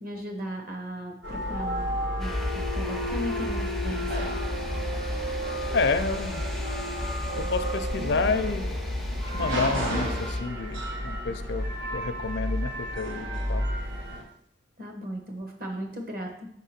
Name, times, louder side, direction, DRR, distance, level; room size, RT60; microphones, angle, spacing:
voice 1, 0.0-4.3 14.8-16.5, equal, 50° right, 2 dB, 1.2 m, -37 dB
sound 1, 1.2-14.2, equal, 70° right, 1.4 m, -32 dB
sound 2, 2.2-10.4, left 1 dB, ahead, 0.4 m, -34 dB
voice 2, 5.7-6.4 7.4-8.8 9.3-11.7 11.9-13.6, left 4 dB, 60° left, 10 dB, 0.5 m, -29 dB
5.9 x 3.7 x 5.8 m, 0.70 s
head